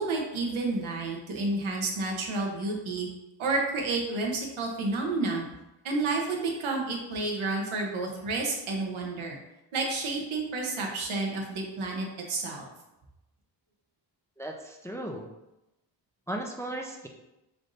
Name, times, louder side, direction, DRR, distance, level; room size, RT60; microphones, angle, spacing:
voice 1, 0.0-3.1 3.4-5.4 5.8-9.4 9.7-12.7, right 3 dB, 85° right, 0 dB, 0.9 m, -30 dB
voice 2, 14.4-15.3 16.3-17.1, right 1 dB, 5° left, 2 dB, 0.3 m, -36 dB
3.4 x 2.6 x 3.9 m, 0.94 s
cardioid pair, 80°, 47 cm